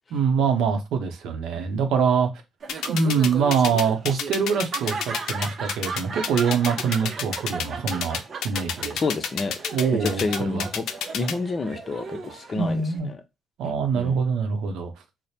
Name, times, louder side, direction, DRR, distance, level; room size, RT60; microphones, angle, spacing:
voice 1, 0.1-2.3 2.9-9.0 9.7-10.6 12.5-13.1 13.6-14.9, right 6 dB, 85° right, 0.7 m, -24 dB
Laughter, 2.6-13.0, right 4 dB, 50° right, 0.6 m, -37 dB
sound 1, 2.7-11.3, left 8 dB, 80° left, 0.4 m, -28 dB
voice 2, 8.9-9.5 10.0-10.9 11.1-13.2 13.9-14.2, left 3 dB, 40° left, 0.6 m, -29 dB
3.2 x 2.1 x 4.1 m
cardioid pair, 90°, 0 cm